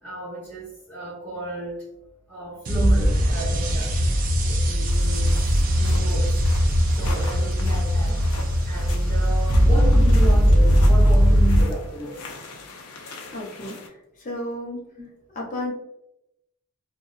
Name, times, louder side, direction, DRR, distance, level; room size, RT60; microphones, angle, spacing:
voice 1, 0.0-1.9 2.3-5.4 5.7-6.4 7.0-8.3 8.6-12.3 15.0-15.1, right 2 dB, 5° right, -13 dB, 0.7 m, -33 dB
sound 1, 2.7-11.6, equal, 35° right, 0.3 m, -19 dB
sound 2, 4.9-13.9, left 3 dB, 90° left, 0.4 m, -41 dB
voice 2, 13.3-13.8 14.2-14.8 15.3-15.7, left 1 dB, 35° left, -2 dB, 0.5 m, -32 dB
2.6 x 2.1 x 2.3 m, 0.83 s
head